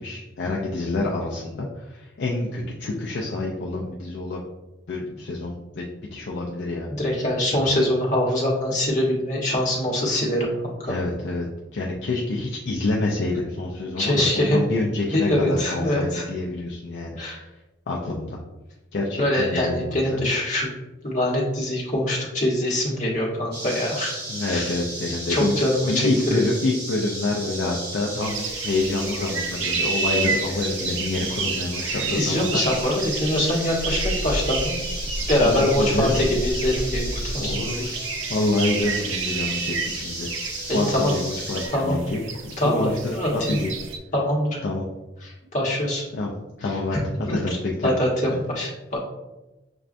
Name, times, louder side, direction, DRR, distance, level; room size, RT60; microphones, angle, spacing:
voice 1, 0.0-4.4 4.9-6.9 7.5-7.7 10.8-11.5 11.7-17.5 17.9-18.4 18.9-20.2 24.3-25.5 25.8-32.7 35.4-36.3 37.4-37.9 38.3-40.3 40.7-43.0 43.3-43.7 44.6-44.9 46.1-46.3 46.6-47.9 48.3-48.4, left 2 dB, 60° left, -2 dB, 0.4 m, -27 dB
voice 2, 6.9-10.9 14.0-14.6 15.1-16.2 17.2-17.4 19.2-20.7 21.0-24.2 24.5-24.8 25.1-26.5 32.1-34.8 35.3-37.6 40.7-41.1 41.7-42.0 42.6-43.6 44.1-44.6 45.2-46.0 47.3-47.6 47.8-49.0, left 1 dB, 40° left, -4 dB, 1.0 m, -23 dB
sound 1, 23.5-41.7, right 1 dB, 50° right, 1.0 m, -34 dB
sound 2, 28.2-44.0, right 3 dB, 75° right, 0.4 m, -30 dB
6.0 x 2.2 x 2.5 m, 1.1 s
head